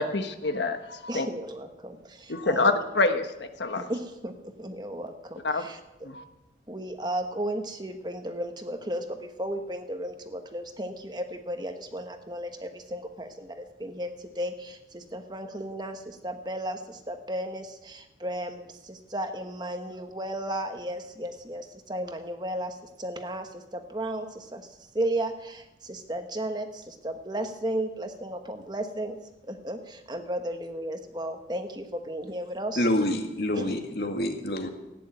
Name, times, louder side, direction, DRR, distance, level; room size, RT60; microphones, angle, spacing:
voice 1, 0.0-1.3 2.3-3.8 5.4-5.6 6.0-6.2, left 3 dB, 75° left, 7 dB, 1.3 m, -26 dB
voice 2, 1.1-3.0 3.9-6.1 6.7-29.2 29.5-33.1 33.5-33.8, right 1 dB, 25° right, 6 dB, 1.3 m, -34 dB
voice 3, 32.8-34.7, left 1 dB, 60° left, 4 dB, 2.2 m, -27 dB
16.0 x 10.0 x 8.9 m, 0.97 s
head